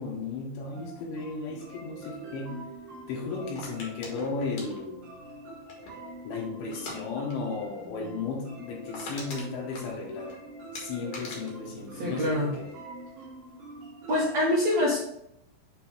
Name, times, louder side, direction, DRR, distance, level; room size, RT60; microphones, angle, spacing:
voice 1, 0.0-2.6 3.1-5.1 6.3-10.4 10.8-12.7, left 4 dB, 75° left, 0 dB, 3.4 m, -35 dB
sound 1, 0.7-14.4, right 2 dB, 55° right, 1.8 m, -45 dB
sound 2, 3.6-6.1 6.7-7.0 7.3-7.5 7.8-7.9 8.3-8.4 8.7-10.3 10.7-12.8 13.1-13.5, left 2 dB, 55° left, 2.1 m, -43 dB
voice 2, 11.9-12.5 14.1-15.0, left 1 dB, 80° right, -5 dB, 1.5 m, -25 dB
8.1 x 4.2 x 3.3 m, 0.78 s
omnidirectional pair, 5.4 m